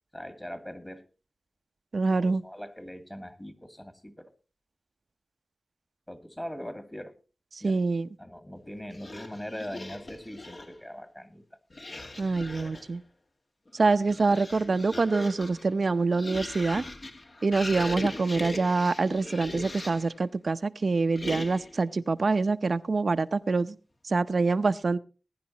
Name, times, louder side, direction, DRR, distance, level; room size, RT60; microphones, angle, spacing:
voice 1, 0.1-1.0 2.2-4.3 6.1-7.2 7.6-7.8 8.2-11.6, equal, 15° left, 9 dB, 2.1 m, -41 dB
voice 2, 1.9-2.4 7.6-8.1 12.2-13.0 13.7-16.8 17.4-23.8 24.0-25.0, right 3 dB, 65° right, 12 dB, 0.7 m, -25 dB
sound 1, 8.9-10.8 11.7-12.9 13.7-20.2 21.1-21.8, left 2 dB, 50° left, 2.0 m, -39 dB
20.0 x 10.5 x 2.9 m, 0.33 s
cardioid pair, 55°, 0 cm